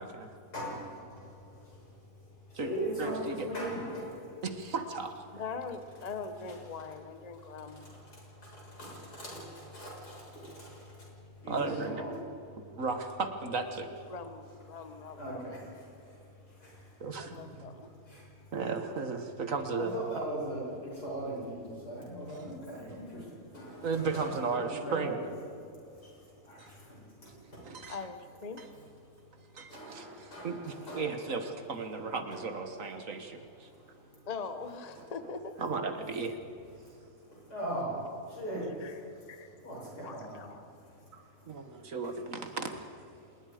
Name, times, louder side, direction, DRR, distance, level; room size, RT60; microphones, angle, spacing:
voice 1, 0.0-0.3 2.5-2.7 3.0-3.5 4.4-5.1 11.5-12.0 12.6-13.9 17.0-17.3 18.5-20.0 23.6-25.2 26.6-26.7 27.6-28.1 28.6-28.7 29.5-33.7 35.0-35.1 35.6-36.4 41.1-42.7, right 4 dB, 55° right, 7 dB, 1.7 m, -35 dB
voice 2, 0.5-1.9 2.2-4.4 7.4-11.1 11.4-12.2 14.8-17.0 17.2-17.5 18.1-18.3 19.8-25.2 26.0-27.8 29.6-31.1 31.9-32.4 33.6-34.3 36.8-36.9 37.3-40.9, right 1 dB, 85° left, -4 dB, 7.6 m, -41 dB
voice 3, 5.3-7.9 14.1-15.5 17.1-17.9 27.9-28.6 34.3-35.5 38.8-39.0 39.3-39.5 40.0-40.5, left 5 dB, 30° left, 9 dB, 0.9 m, -42 dB
27.0 x 20.5 x 5.0 m, 2.6 s
omnidirectional pair, 1.7 m